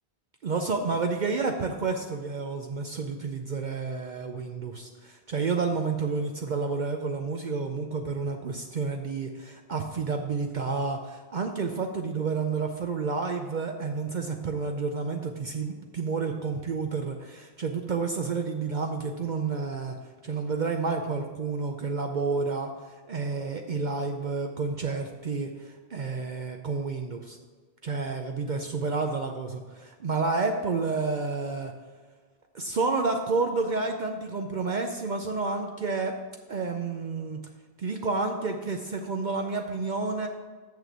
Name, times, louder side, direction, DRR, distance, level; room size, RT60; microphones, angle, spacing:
voice 1, 0.4-20.0 20.2-27.4 27.8-31.7 32.5-36.2 36.5-37.4 37.8-40.3, right 4 dB, 55° right, 4 dB, 0.7 m, -30 dB
6.7 x 6.5 x 6.1 m, 1.4 s
omnidirectional pair, 1.0 m